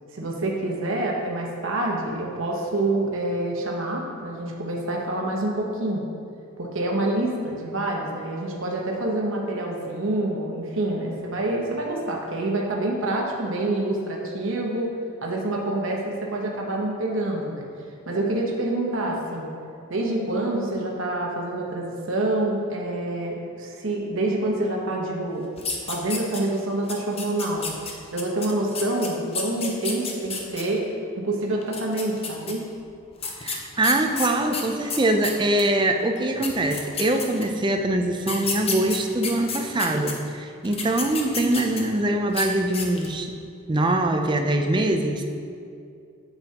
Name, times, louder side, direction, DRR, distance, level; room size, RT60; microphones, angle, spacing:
voice 1, 0.1-6.0 6.6-14.9 15.2-17.7 18.1-19.5 19.9-25.5 25.9-27.8 28.1-30.9 31.2-32.6, right 2 dB, 60° right, -1 dB, 1.1 m, -27 dB
sound 1, 25.6-26.6 26.9-30.6 31.6-32.5 33.2-35.7 36.2-36.3 36.4-37.6 38.2-40.1 40.6-42.0 42.3-42.5 42.7-43.2, left 4 dB, 25° left, 0.7 m, -31 dB
voice 2, 33.4-43.3 43.7-45.2, right 1 dB, 20° right, 4 dB, 0.4 m, -23 dB
9.3 x 7.0 x 2.9 m, 2.4 s
head